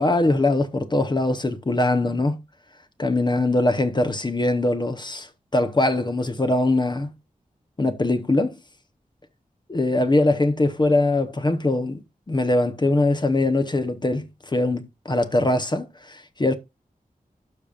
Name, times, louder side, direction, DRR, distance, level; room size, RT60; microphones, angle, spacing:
voice 1, 0.0-2.4 3.0-7.1 7.8-8.6 9.7-12.0 12.3-16.5, left 2 dB, 30° left, 0.9 m, -22 dB
12.5 x 5.1 x 2.4 m
wide cardioid pair, 90°, 15 cm